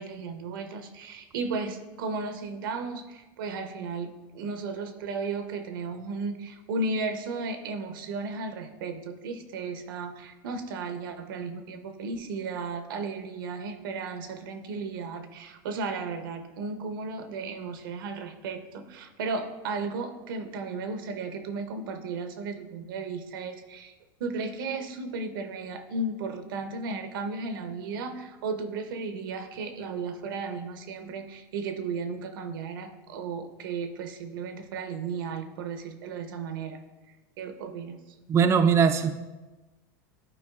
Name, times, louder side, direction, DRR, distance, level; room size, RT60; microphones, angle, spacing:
voice 1, 0.0-23.9 24.2-36.8 37.4-38.0, right 4 dB, 85° right, 8 dB, 0.7 m, -34 dB
voice 2, 38.3-39.1, right 6 dB, 25° right, 7 dB, 0.4 m, -20 dB
11.0 x 4.6 x 2.4 m, 1.1 s
supercardioid pair, 115°, 11 cm